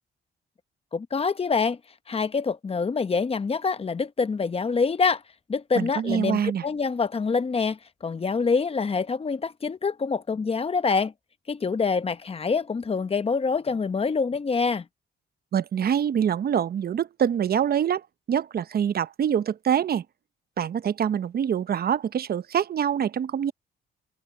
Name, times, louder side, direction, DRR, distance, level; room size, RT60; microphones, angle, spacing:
voice 1, 0.9-1.8 2.1-5.2 5.5-11.1 11.5-14.8, left 5 dB, 30° left, 1.0 m, -26 dB
voice 2, 5.8-6.6 15.5-20.0 20.6-23.5, right 8 dB, 50° right, 0.8 m, -25 dB
cardioid pair, 90°, 20 cm